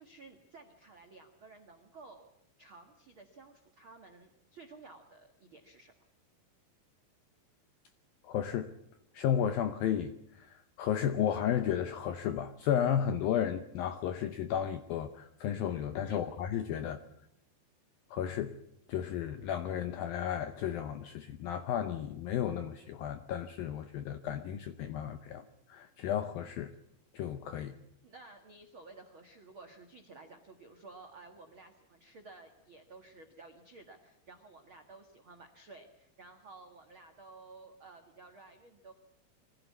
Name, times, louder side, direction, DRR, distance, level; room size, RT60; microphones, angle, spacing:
voice 1, 0.0-2.3 2.6-5.9 16.1-16.4 16.8-17.1 26.7-26.8 28.0-38.9, right 3 dB, 90° right, 4 dB, 1.1 m, -54 dB
voice 2, 8.2-8.7 9.1-17.0 18.1-18.6 18.9-26.7 27.1-27.8, left 9 dB, 80° left, 10 dB, 2.0 m, -33 dB
24.0 x 15.5 x 8.3 m, 0.85 s
omnidirectional pair, 5.3 m